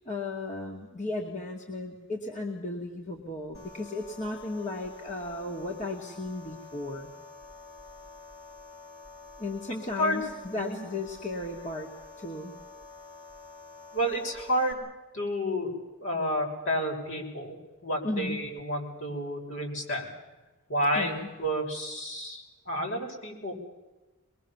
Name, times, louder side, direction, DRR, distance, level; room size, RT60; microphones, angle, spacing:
voice 1, 0.1-7.1 9.4-11.9 12.2-12.6 18.0-18.5 20.9-21.3, left 2 dB, 35° left, 1 dB, 2.4 m, -35 dB
sound 1, 3.5-14.7, left 3 dB, 85° left, 6.7 m, -48 dB
voice 2, 10.5-10.8 13.9-14.8 15.1-15.7 16.0-17.5 17.8-20.1 20.7-21.1 21.4-23.5, equal, 65° left, 0 dB, 6.3 m, -30 dB
25.0 x 21.5 x 7.3 m, 1.1 s
head